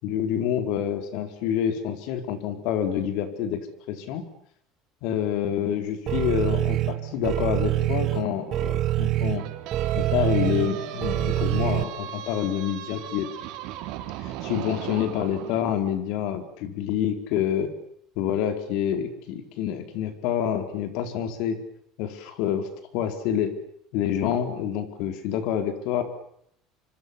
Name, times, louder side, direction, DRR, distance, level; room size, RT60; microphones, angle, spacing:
voice 1, 0.0-3.6 3.9-4.2 5.0-9.4 9.9-13.3 14.2-17.7 18.2-21.6 22.0-23.5 23.9-26.0, left 9 dB, 70° left, 8 dB, 4.6 m, -27 dB
sound 1, 6.1-11.8, right 15 dB, 50° right, 1.3 m, -25 dB
sound 2, 9.4-15.6, right 13 dB, 70° right, 4.0 m, -36 dB
26.5 x 25.0 x 7.1 m, 0.69 s
supercardioid pair, 120°, 0 cm